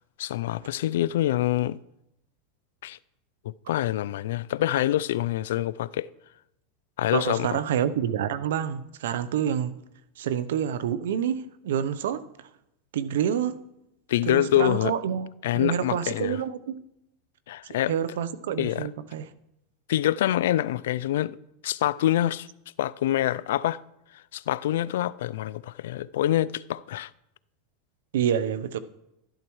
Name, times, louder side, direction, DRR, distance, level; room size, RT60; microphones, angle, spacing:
voice 1, 0.2-1.8 2.8-3.0 3.4-6.1 7.0-7.6 14.1-14.9 15.4-16.4 17.5-17.9 18.6-18.9 19.9-21.4 21.6-22.5 22.8-23.8 24.3-27.1, left 13 dB, 80° left, 0.3 m, -26 dB
voice 2, 7.1-9.7 10.2-12.2 12.9-13.6 14.3-15.3 15.5-16.8 17.9-19.3 28.1-28.8, right 9 dB, 85° right, 0.7 m, -27 dB
12.0 x 11.5 x 3.1 m
supercardioid pair, 130°, 0 cm